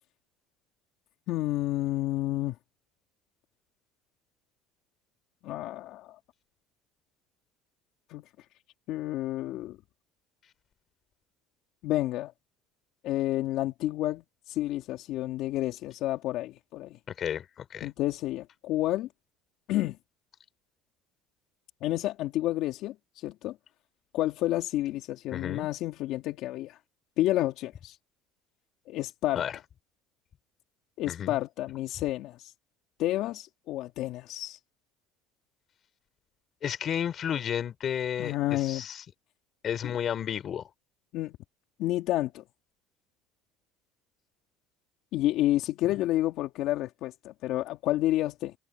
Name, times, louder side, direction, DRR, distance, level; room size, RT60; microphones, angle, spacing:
voice 1, 1.3-2.6 5.4-6.2 8.1-8.2 8.9-9.8 11.8-12.3 13.0-17.0 17.8-19.1 19.7-20.0 21.8-23.6 24.1-26.8 27.2-28.0 28.9-29.4 31.0-32.5 33.0-34.6 38.2-38.8 39.8-39.9 41.1-41.4 41.8-42.4 45.1-48.5, left 15 dB, 65° left, 2.7 m, -30 dB
voice 2, 17.1-17.9 25.3-25.7 29.3-29.5 31.1-31.4 36.6-39.0 39.6-40.7, left 9 dB, 40° left, 5.0 m, -32 dB
supercardioid pair, 110°, 0 cm